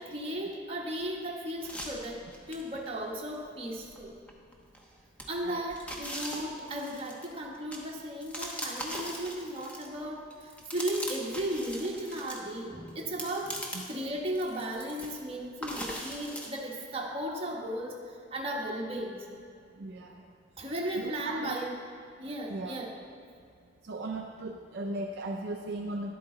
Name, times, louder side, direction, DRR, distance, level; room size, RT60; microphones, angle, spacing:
voice 1, 0.0-2.2 2.5-4.2 5.3-19.3 20.6-21.7 22.2-22.9, right 1 dB, 30° right, -1 dB, 1.2 m, -35 dB
sound 1, 1.6-2.9 3.3-3.4 3.9-4.8 5.2-10.0 10.3-12.4 12.9-14.0 14.3-15.2 15.6-16.5, equal, 5° left, 0.9 m, -40 dB
voice 2, 19.8-20.3 20.9-21.6 22.5-22.8 23.8-26.2, right 2 dB, 55° right, 1 dB, 0.5 m, -37 dB
11.0 x 8.6 x 3.8 m, 2.4 s
head